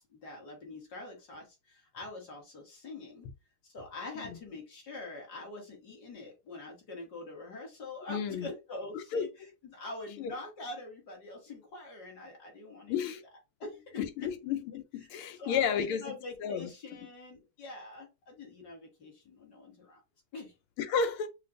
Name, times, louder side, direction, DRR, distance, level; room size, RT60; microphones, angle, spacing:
voice 1, 0.1-3.3 3.6-13.2 13.6-14.3 15.0-20.0 20.3-20.5, left 2 dB, 50° left, 2.0 m, -44 dB
voice 2, 8.1-8.5 9.1-9.2 10.2-10.3 12.9-13.2 14.0-16.1 16.4-16.7 20.8-21.3, left 6 dB, 90° left, 1.6 m, -32 dB
6.5 x 2.4 x 2.6 m
omnidirectional pair, 2.3 m